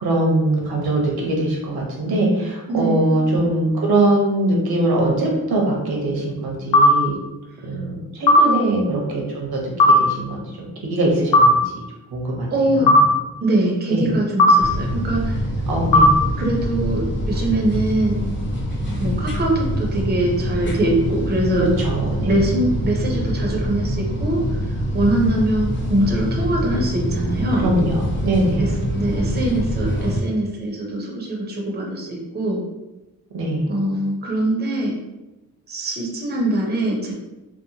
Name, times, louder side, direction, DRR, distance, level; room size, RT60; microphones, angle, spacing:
voice 1, 0.0-7.1 7.6-10.4 10.8-11.6 12.1-12.5 12.8-13.0 13.9-14.2 15.7-16.1 21.6-22.4 27.5-28.7 33.3-33.8, right 1 dB, 80° right, -1 dB, 0.8 m, -22 dB
voice 2, 2.7-3.2 8.4-8.8 12.5-12.9 13.4-15.4 16.4-18.2 19.0-21.7 22.2-24.4 24.9-27.7 28.6-32.6 33.7-35.0 35.7-37.1, right 1 dB, 25° right, -1 dB, 0.5 m, -22 dB
sound 1, 6.7-6.9 8.3-8.5 9.8-10.0 11.3-11.5 12.9-13.1 14.4-14.6 15.9-16.1, left 1 dB, 80° left, 0.5 m, -11 dB
sound 2, 14.6-30.2, equal, 30° left, 0.6 m, -25 dB
2.8 x 2.1 x 2.7 m, 1.0 s
wide cardioid pair, 125°, 37 cm